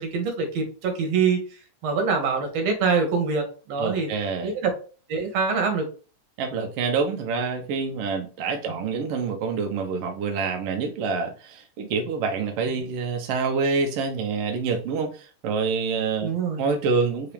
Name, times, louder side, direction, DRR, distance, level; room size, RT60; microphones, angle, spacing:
voice 1, 0.0-1.4 1.8-4.1 4.4-4.7 5.1-5.9 16.2-16.6, right 5 dB, 65° right, 3 dB, 2.0 m, -24 dB
voice 2, 3.8-4.5 6.4-16.3 16.6-17.3, right 4 dB, 85° right, 4 dB, 1.3 m, -27 dB
4.7 x 2.9 x 3.4 m, 0.36 s
omnidirectional pair, 3.6 m